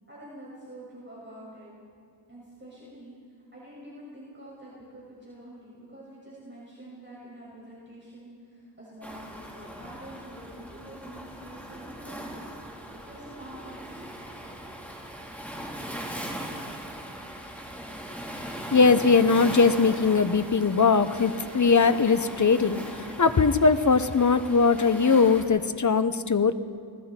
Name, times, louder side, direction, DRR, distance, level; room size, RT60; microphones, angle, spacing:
voice 1, 0.1-1.7 2.3-3.1 3.5-12.4 12.9-13.9, right 1 dB, 25° right, -7 dB, 6.4 m, -46 dB
Waves surf, 9.0-25.4, equal, 5° left, 4.0 m, -39 dB
voice 2, 18.7-26.5, left 4 dB, 40° left, 11 dB, 0.9 m, -21 dB
29.0 x 20.0 x 4.5 m, 2.3 s
wide cardioid pair, 80°, 44 cm